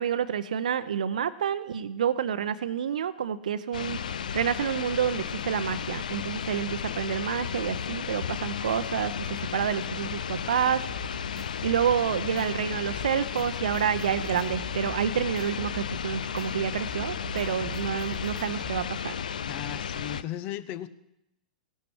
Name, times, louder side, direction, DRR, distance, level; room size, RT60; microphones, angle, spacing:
voice 1, 0.0-4.0 4.3-10.8 11.6-19.1, right 8 dB, 65° right, 12 dB, 0.7 m, -28 dB
sound 1, 3.7-20.2, left 7 dB, 70° left, 0.5 m, -34 dB
sound 2, 10.9-18.9, right 3 dB, 5° right, 1.5 m, -46 dB
voice 2, 19.5-20.9, left 12 dB, 40° left, 15 dB, 0.9 m, -36 dB
17.5 x 12.0 x 4.9 m, 0.82 s
figure-of-eight pair, 100°, 4 cm